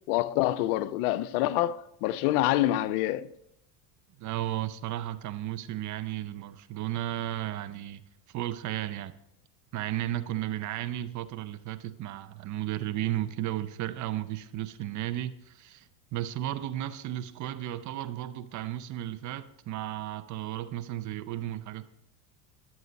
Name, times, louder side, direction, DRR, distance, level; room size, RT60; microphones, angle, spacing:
voice 1, 0.1-3.3, left 15 dB, 70° left, 0.6 m, -26 dB
voice 2, 4.2-8.0 8.3-9.1 9.7-21.8, right 13 dB, 40° right, 0.7 m, -34 dB
11.0 x 7.8 x 4.0 m
supercardioid pair, 100°, 46 cm